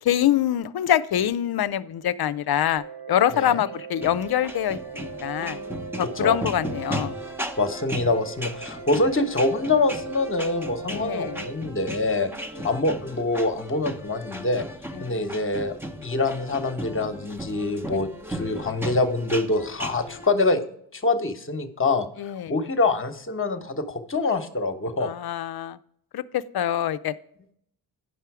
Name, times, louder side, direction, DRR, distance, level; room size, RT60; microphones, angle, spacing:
voice 1, 0.0-5.6 6.0-7.1 10.9-11.4 12.6-12.7 14.9-15.1 17.9-18.0 22.2-22.5 25.0-25.8 26.1-27.1, left 10 dB, 55° left, 15 dB, 0.5 m, -25 dB
sound 1, 2.8-11.5, right 5 dB, 50° right, 1.3 m, -39 dB
sound 2, 4.0-20.3, equal, 5° right, 0.9 m, -36 dB
voice 2, 7.6-12.3 12.6-14.7 15.0-15.7 16.0-20.6 20.9-22.1 22.5-25.1, left 2 dB, 25° left, 8 dB, 1.1 m, -25 dB
9.9 x 5.6 x 4.7 m, 0.71 s
supercardioid pair, 40°, 46 cm